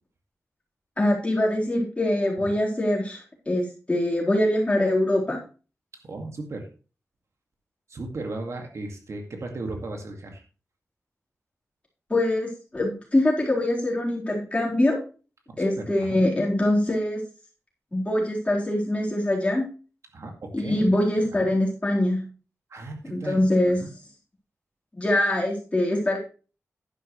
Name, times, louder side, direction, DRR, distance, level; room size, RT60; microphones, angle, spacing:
voice 1, 1.0-5.4 12.1-15.0 15.6-17.2 17.9-19.6 20.5-22.2 23.1-23.9 25.0-26.2, left 1 dB, 25° left, -3 dB, 4.1 m, -23 dB
voice 2, 6.0-6.7 7.9-10.4 15.5-16.2 20.1-20.9 22.7-23.4 23.8-23.9, right 2 dB, 70° right, 3 dB, 2.1 m, -36 dB
11.0 x 10.5 x 3.2 m, 0.36 s
wide cardioid pair, 130°, 5 cm